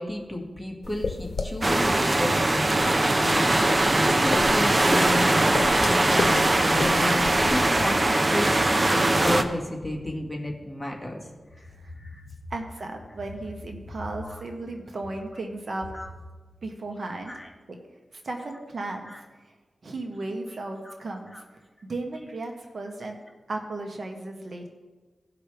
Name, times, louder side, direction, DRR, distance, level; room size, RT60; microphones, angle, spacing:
voice 1, 0.0-1.9 2.2-3.7 4.0-11.2 11.6-11.7 12.0-12.3 14.2-14.4 15.9-16.1 17.3-17.5 19.1-19.2 20.8-21.0 21.3-21.4, left 1 dB, 5° left, -1 dB, 2.1 m, -32 dB
sound 1, 0.8-7.6, left 4 dB, 70° left, 0.8 m, -34 dB
sound 2, 1.6-9.4, right 2 dB, 35° right, 0.8 m, -21 dB
voice 2, 12.5-15.9 16.6-17.3 17.7-17.8 18.2-19.1 19.8-21.3 21.9-23.2 23.5-24.7, right 2 dB, 65° right, 3 dB, 1.3 m, -35 dB
18.0 x 5.9 x 3.5 m, 1.3 s
cardioid pair, 60°, 0 cm